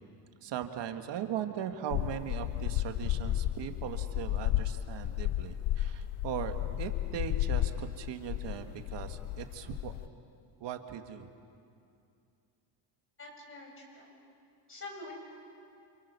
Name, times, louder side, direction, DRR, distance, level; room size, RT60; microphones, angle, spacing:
voice 1, 0.4-9.9 10.6-11.3, right 9 dB, 70° right, 6 dB, 1.9 m, -39 dB
sound 1, 1.9-10.1, left 14 dB, 70° left, 0.6 m, -33 dB
voice 2, 13.2-14.1 14.7-15.1, left 2 dB, 30° left, 1 dB, 6.6 m, -46 dB
29.0 x 28.5 x 6.9 m, 2.5 s
cardioid pair, 160°, 45 cm